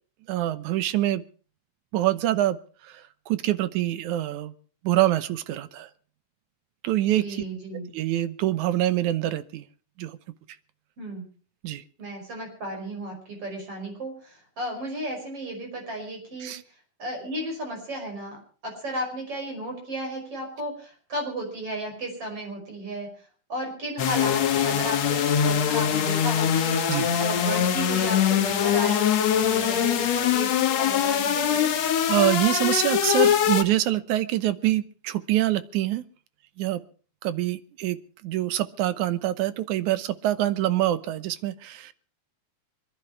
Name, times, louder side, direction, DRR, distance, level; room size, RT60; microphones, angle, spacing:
voice 1, 0.3-1.2 1.9-2.6 2.8-4.5 4.8-5.9 6.8-7.4 7.9-9.6 10.0-10.2 11.6-11.8 16.4-16.6 26.9-27.1 32.1-36.0 36.6-36.8 37.2-38.0 38.2-41.9, right 14 dB, 85° right, 14 dB, 2.4 m, -25 dB
voice 2, 7.1-7.9 11.0-11.2 12.0-16.5 17.0-23.1 23.5-31.7, right 1 dB, 50° right, 2 dB, 6.5 m, -34 dB
sound 1, 24.0-33.6, left 9 dB, 65° left, 2.5 m, -23 dB
25.5 x 10.5 x 4.6 m, 0.41 s
omnidirectional pair, 3.3 m